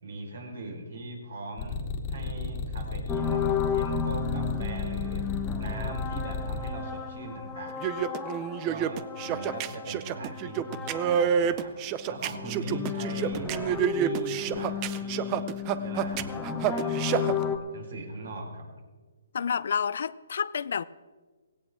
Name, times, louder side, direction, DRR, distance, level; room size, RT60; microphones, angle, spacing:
voice 1, 0.0-1.8 2.1-5.2 5.6-8.1 8.3-11.7 12.1-18.7, right 2 dB, 70° right, 1 dB, 4.8 m, -40 dB
sound 1, 1.6-6.7, left 4 dB, 35° left, 2.0 m, -33 dB
sound 2, 3.1-11.7 12.0-17.6, left 6 dB, 10° left, 1.3 m, -33 dB
sound 3, 7.7-17.3, right 9 dB, 25° right, 0.6 m, -28 dB
voice 2, 19.3-20.8, left 7 dB, 65° left, 19 dB, 0.5 m, -29 dB
17.0 x 17.0 x 3.7 m, 1.4 s
hypercardioid pair, 150°, 0 cm